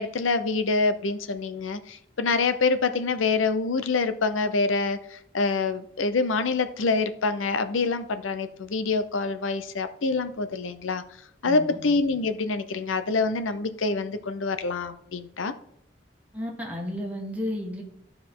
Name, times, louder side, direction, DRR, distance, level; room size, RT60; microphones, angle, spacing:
voice 1, 0.0-11.0 11.4-15.5, left 3 dB, 90° left, 11 dB, 0.7 m, -26 dB
voice 2, 11.4-11.8 16.3-17.8, left 1 dB, 10° right, -1 dB, 1.5 m, -32 dB
13.5 x 4.7 x 3.7 m, 0.73 s
head